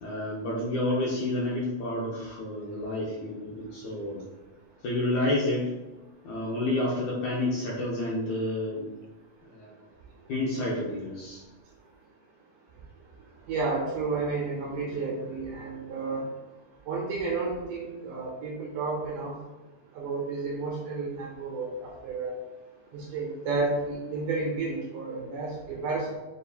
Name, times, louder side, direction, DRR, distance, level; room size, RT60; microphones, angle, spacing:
voice 1, 0.0-4.2 4.8-5.7 6.2-8.9 9.4-9.8 10.3-11.4, left 1 dB, 75° left, -6 dB, 1.8 m, -29 dB
voice 2, 13.5-16.2 16.9-19.3 20.0-22.4 22.9-26.2, right 3 dB, 80° right, -2 dB, 2.0 m, -31 dB
6.5 x 2.5 x 2.7 m, 1.1 s
omnidirectional pair, 4.2 m